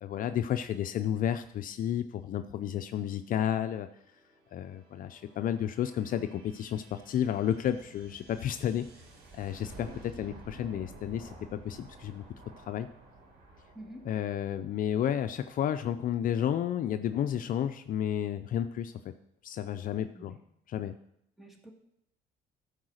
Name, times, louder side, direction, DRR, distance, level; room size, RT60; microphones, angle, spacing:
voice 1, 0.0-3.9 4.5-8.8 9.3-12.2 12.6-12.9 14.0-18.9 19.4-20.3 20.7-20.9, left 10 dB, 55° left, 9 dB, 0.5 m, -31 dB
sound 1, 3.3-16.7, right 2 dB, 85° right, 3.7 m, -53 dB
voice 2, 13.7-14.1 20.1-20.4 21.4-21.7, equal, ahead, 2 dB, 2.0 m, -47 dB
13.5 x 4.8 x 6.4 m, 0.78 s
cardioid pair, 110°, 17 cm